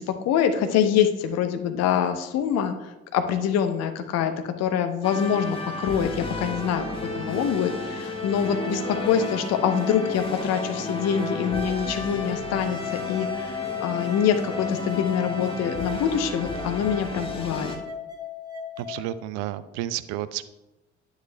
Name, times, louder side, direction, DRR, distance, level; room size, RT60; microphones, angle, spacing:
voice 1, 0.0-12.8 13.1-17.7, left 8 dB, 50° left, 7 dB, 0.9 m, -25 dB
sound 1, 5.0-17.8, left 2 dB, 15° left, 1.6 m, -32 dB
sound 2, 9.0-19.0, left 7 dB, 85° right, 1.0 m, -37 dB
voice 2, 18.8-20.4, right 13 dB, 55° right, 14 dB, 0.5 m, -31 dB
10.0 x 9.5 x 2.2 m, 0.99 s
figure-of-eight pair, 50°, 33 cm